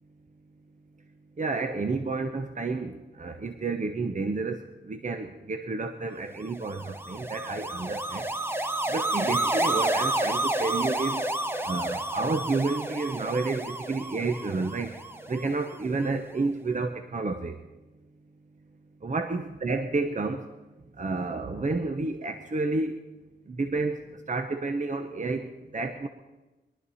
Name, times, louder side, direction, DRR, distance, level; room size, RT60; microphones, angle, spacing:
voice 1, 1.4-4.6 4.9-8.2 8.9-11.3 11.7-14.9 15.3-17.6 19.0-20.4 21.0-22.9 23.5-24.0 24.3-26.1, right 3 dB, 45° right, 6 dB, 1.0 m, -30 dB
sound 1, 6.5-15.8, right 1 dB, 10° right, 1.0 m, -30 dB
22.0 x 12.5 x 4.2 m, 1.1 s
wide cardioid pair, 75°, 18 cm